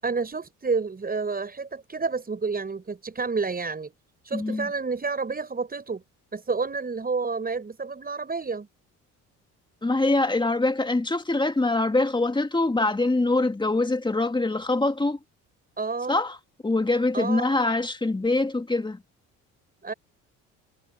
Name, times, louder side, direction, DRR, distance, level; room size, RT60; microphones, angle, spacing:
voice 1, 0.0-3.9 4.2-6.0 6.3-8.7 15.8-16.2 17.1-17.5 19.8-19.9, right 4 dB, 30° right, 7.6 m, -29 dB
voice 2, 4.3-4.7 9.8-15.2 16.1-16.4 16.6-19.0, left 2 dB, 15° left, 2.1 m, -24 dB
cardioid pair, 85°, 32 cm